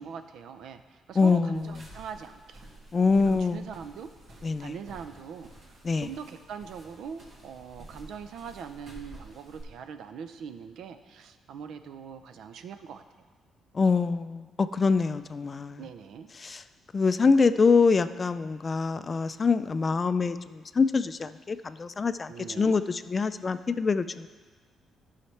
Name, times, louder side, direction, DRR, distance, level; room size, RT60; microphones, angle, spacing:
voice 1, 0.0-2.6 2.9-5.5 6.0-13.0 15.8-16.3 22.3-22.8, right 7 dB, 75° right, 9 dB, 0.5 m, -42 dB
voice 2, 1.2-1.7 2.9-3.6 4.4-4.7 5.8-6.1 13.7-15.8 16.4-16.6 16.9-24.3, left 4 dB, 35° left, 12 dB, 0.3 m, -25 dB
sound 1, 1.5-9.6, right 1 dB, 60° right, 2.3 m, -50 dB
12.0 x 5.7 x 3.3 m, 1.4 s
cardioid pair, 90°, 0 cm